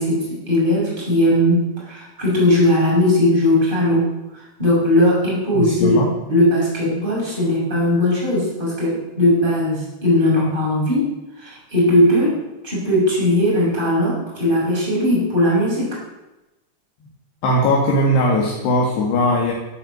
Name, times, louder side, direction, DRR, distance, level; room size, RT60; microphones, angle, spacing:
voice 1, 0.0-11.1 11.4-12.4 12.6-16.0, left 1 dB, 10° right, -5 dB, 6.5 m, -18 dB
voice 2, 5.5-6.1 17.4-19.5, left 1 dB, 70° left, -2 dB, 3.8 m, -19 dB
14.5 x 8.9 x 7.9 m, 0.97 s
omnidirectional pair, 5.1 m